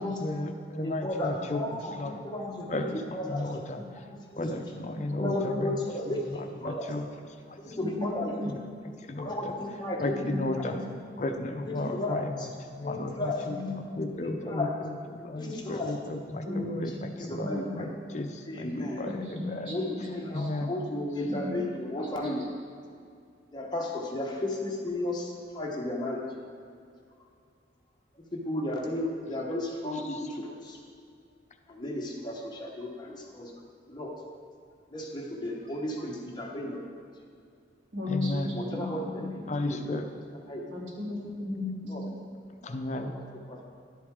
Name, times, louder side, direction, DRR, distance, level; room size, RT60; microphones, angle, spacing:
voice 1, 0.0-1.6 2.0-2.1 2.7-4.0 4.4-7.1 7.5-7.8 8.4-8.6 9.0-9.3 10.0-10.8 11.2-12.5 12.8-19.7 20.3-20.7 29.9-30.2 38.1-38.6 39.5-40.1 42.6-43.1, left 2 dB, 40° left, 5 dB, 0.5 m, -34 dB
voice 2, 0.8-1.9 2.2-2.9 3.1-3.4 4.1-4.5 5.1-6.3 6.6-6.9 7.6-8.4 9.2-10.7 11.7-12.5 12.8-13.4 14.1-14.7 15.4-16.0 16.5-16.7 17.3-17.9 18.5-19.0 19.7-22.5 23.5-26.2 28.3-30.8 31.7-33.5 33.9-34.1 34.9-36.8 38.4-39.8 40.5-40.6 41.8-42.0 42.6-43.2 43.5-43.6, left 1 dB, 25° left, -1 dB, 1.0 m, -34 dB
voice 3, 2.0-2.8 3.8-3.9 5.1-5.6 7.8-8.1 8.4-8.5 10.1-10.4 13.5-13.8 16.4-16.7 17.4-17.7 19.0-19.7 20.9-21.6 37.9-38.8 39.1-39.2 40.7-41.8, left 2 dB, 85° right, -4 dB, 2.3 m, -35 dB
11.0 x 7.9 x 3.6 m, 2.3 s
head